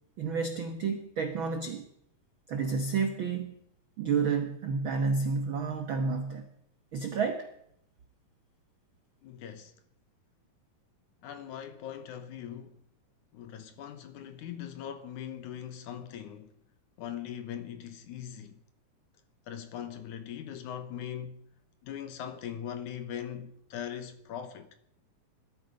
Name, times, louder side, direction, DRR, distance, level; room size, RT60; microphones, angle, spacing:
voice 1, 0.2-1.8 2.5-3.5 4.0-6.5 6.9-7.5, right 5 dB, 85° right, 1.1 m, -30 dB
voice 2, 9.2-9.7 11.2-12.8 13.3-16.5 17.0-18.6 19.5-21.4 21.8-24.7, left 9 dB, 70° left, 2.2 m, -40 dB
19.5 x 13.0 x 5.3 m
omnidirectional pair, 4.2 m